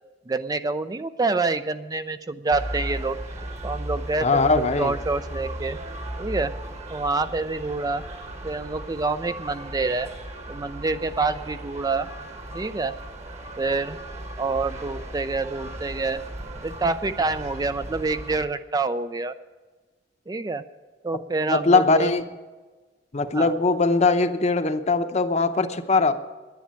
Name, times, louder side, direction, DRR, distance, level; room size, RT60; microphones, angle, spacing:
voice 1, 0.3-3.2 3.6-4.5 4.8-5.8 6.2-6.5 6.9-8.0 8.4-10.1 10.5-12.1 12.5-13.0 13.6-14.0 14.4-16.2 16.6-19.3 20.3-20.6 21.0-22.1 23.3-23.5, right 3 dB, 20° right, 11 dB, 0.4 m, -27 dB
sound 1, 2.5-18.5, right 1 dB, 40° right, 1.5 m, -36 dB
voice 2, 4.2-4.9 21.5-22.3 23.1-26.1, left 3 dB, 40° left, 9 dB, 0.8 m, -21 dB
10.5 x 10.5 x 8.7 m, 1.3 s
head